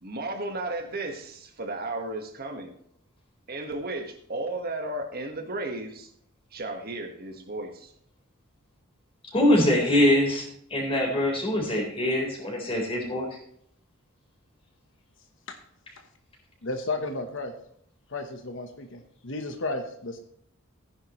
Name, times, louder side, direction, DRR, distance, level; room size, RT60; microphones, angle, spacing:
voice 1, 0.0-2.7 3.5-6.1 6.5-7.9, right 2 dB, 50° right, 4 dB, 1.6 m, -34 dB
voice 2, 9.2-13.3, left 1 dB, 30° left, -1 dB, 4.4 m, -23 dB
voice 3, 16.6-17.5 18.1-20.2, left 2 dB, 65° left, 6 dB, 1.2 m, -33 dB
15.0 x 10.5 x 3.2 m, 0.68 s
head